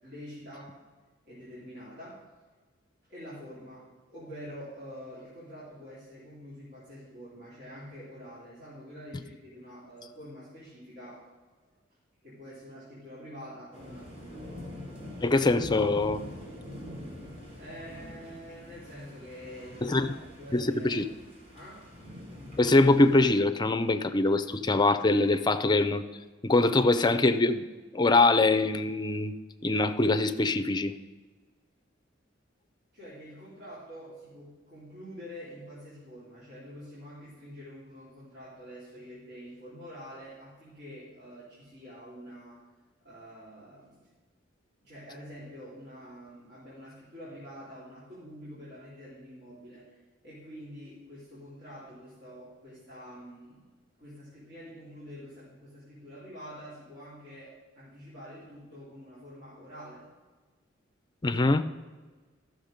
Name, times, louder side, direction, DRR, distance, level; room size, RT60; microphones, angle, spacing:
voice 1, 0.0-0.7 1.2-2.3 3.0-11.3 12.2-14.7 17.6-20.9 21.5-21.9 25.4-25.5 32.9-42.7 43.0-44.1 44.8-53.7 54.0-60.1, equal, 55° right, -10 dB, 3.3 m, -46 dB
sound 1, 13.7-23.3, left 1 dB, 30° right, 3.4 m, -44 dB
voice 2, 15.2-16.2 19.8-20.1 20.5-21.0 22.6-26.0 26.4-27.6 27.9-29.4 29.6-30.9 61.2-61.7, left 2 dB, 20° left, 10 dB, 0.5 m, -23 dB
13.0 x 6.4 x 5.1 m, 1.4 s
head